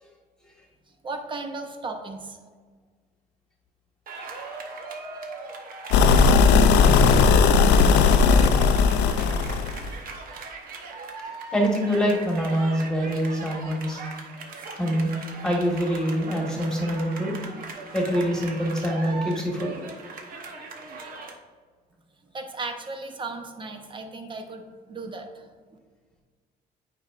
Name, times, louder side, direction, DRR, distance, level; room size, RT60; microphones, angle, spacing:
voice 1, 1.0-2.4 22.3-25.5, right 3 dB, 30° right, 5 dB, 0.8 m, -35 dB
sound 1, 4.1-21.3, right 3 dB, 55° right, 1.0 m, -39 dB
sound 2, 5.9-9.9, left 5 dB, 85° left, 0.5 m, -17 dB
voice 2, 11.5-14.0 14.7-15.1 15.4-17.4 17.9-19.8, equal, 5° left, -1 dB, 1.6 m, -25 dB
8.5 x 5.2 x 2.5 m, 1.5 s
cardioid pair, 110°, 17 cm